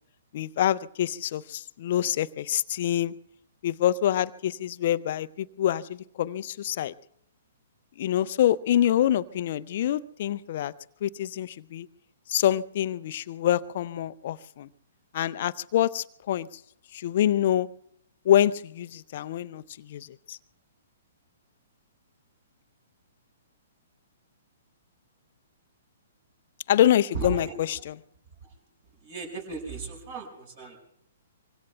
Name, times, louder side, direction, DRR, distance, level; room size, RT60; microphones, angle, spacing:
voice 1, 0.3-3.1 3.6-6.9 8.0-10.7 11.0-11.9 12.3-14.7 15.1-16.5 16.9-17.7 18.2-20.4 26.7-27.9, left 11 dB, 45° left, 18 dB, 0.5 m, -26 dB
voice 2, 27.1-27.8 28.4-28.5 29.0-30.8, right 3 dB, 45° right, 4 dB, 5.6 m, -36 dB
25.0 x 24.5 x 2.3 m, 0.72 s
figure-of-eight pair, 120°, 0 cm